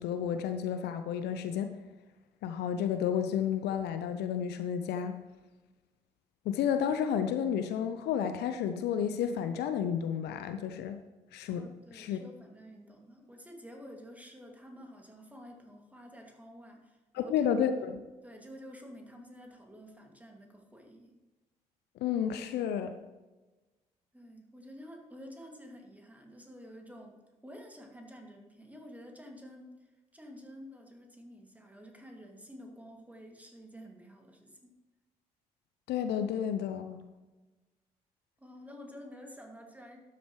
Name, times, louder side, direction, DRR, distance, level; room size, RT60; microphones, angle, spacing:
voice 1, 0.0-1.7 2.4-5.1 6.5-11.0 11.3-11.6 11.9-12.2 17.1-18.0 22.0-22.9 35.9-37.0, left 8 dB, 60° left, 9 dB, 0.6 m, -31 dB
voice 2, 11.5-17.5 17.9-21.1 24.1-27.2 27.4-34.7 38.4-40.0, equal, 10° right, 2 dB, 2.5 m, -50 dB
12.5 x 8.9 x 3.2 m, 1.2 s
figure-of-eight pair, 45°, 19 cm